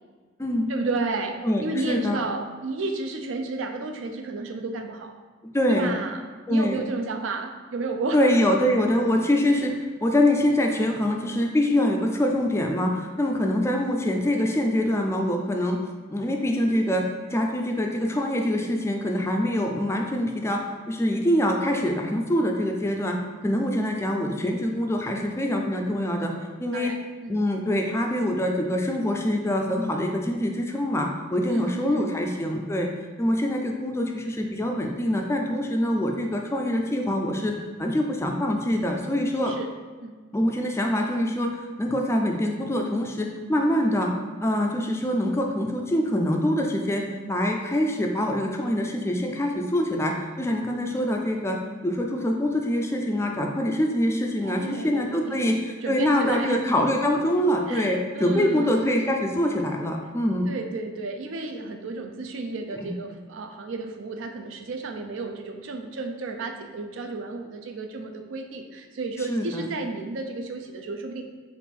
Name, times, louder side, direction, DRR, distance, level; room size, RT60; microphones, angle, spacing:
voice 1, 0.7-5.1 5.7-6.2 6.5-8.4 26.7-27.4 31.5-32.1 39.5-39.7 40.0-40.2 54.4-55.4 55.8-56.6 57.7-58.9 60.5-71.2, right 3 dB, 75° right, 5 dB, 0.4 m, -32 dB
voice 2, 1.4-2.2 5.5-5.9 6.5-6.8 8.1-15.8 16.1-17.0 17.3-20.6 20.9-23.2 23.4-26.3 26.6-26.9 27.3-32.9 33.2-37.5 37.8-39.5 40.3-44.1 44.4-51.6 51.8-60.5 62.8-62.9 69.3-69.7, left 1 dB, 15° left, 2 dB, 0.3 m, -24 dB
3.6 x 2.5 x 4.2 m, 1.5 s
head